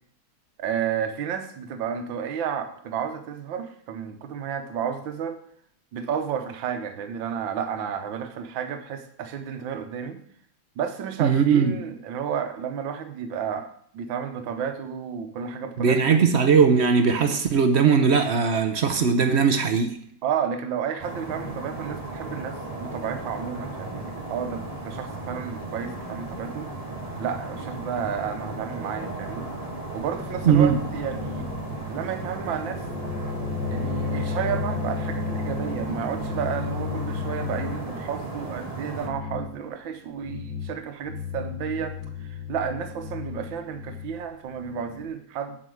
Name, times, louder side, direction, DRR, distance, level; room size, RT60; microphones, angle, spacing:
voice 1, 0.6-5.4 5.9-10.2 10.8-13.7 13.9-16.2 20.2-26.7 27.2-29.5 29.9-31.5 31.9-32.8 33.7-45.6, right 8 dB, 75° right, 6 dB, 1.7 m, -31 dB
voice 2, 11.2-11.7 15.8-20.0 30.5-30.8, right 6 dB, 55° right, 6 dB, 0.7 m, -19 dB
sound 1, 21.0-39.1, right 2 dB, 20° right, 1.7 m, -35 dB
sound 2, 30.2-37.9 38.9-39.6 40.2-40.8 41.0-45.1, left 5 dB, 70° left, 1.9 m, -33 dB
7.8 x 5.8 x 7.7 m, 0.63 s
omnidirectional pair, 2.2 m